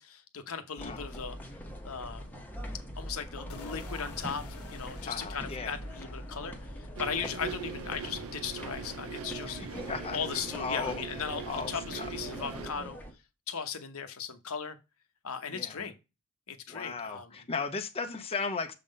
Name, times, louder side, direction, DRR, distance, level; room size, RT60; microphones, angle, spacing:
voice 1, 0.0-1.4 1.8-2.3 3.0-9.6 10.1-13.0 13.5-14.8 15.2-15.9 16.5-17.4, left 6 dB, 70° left, 0.9 m, -37 dB
sound 1, 0.8-13.1, equal, 10° left, 1.0 m, -43 dB
sound 2, 3.5-9.5, left 2 dB, 90° left, 1.2 m, -51 dB
voice 2, 5.1-5.8 9.5-11.0 11.5-12.1 15.5-15.8 16.7-18.7, left 4 dB, 25° left, 0.7 m, -36 dB
sound 3, 7.0-12.7, right 6 dB, 65° right, 0.6 m, -41 dB
6.7 x 3.7 x 5.2 m
head